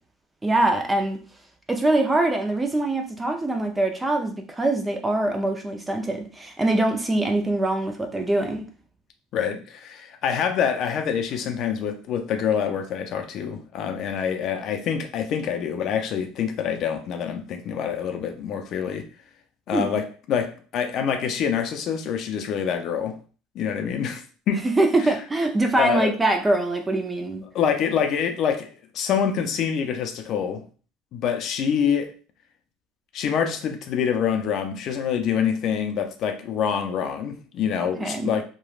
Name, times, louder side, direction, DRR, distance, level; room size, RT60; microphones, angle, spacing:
voice 1, 0.4-1.2 1.7-8.6 19.7-19.9 24.6-27.4 37.8-38.3, right 2 dB, 15° right, 0.5 m, -23 dB
voice 2, 9.3-19.1 19.7-23.2 23.5-24.7 25.0-25.1 25.8-26.1 27.5-30.6 31.1-32.1 33.1-38.4, left 7 dB, 55° left, 0.5 m, -26 dB
3.1 x 2.2 x 2.4 m
supercardioid pair, 100°, 0 cm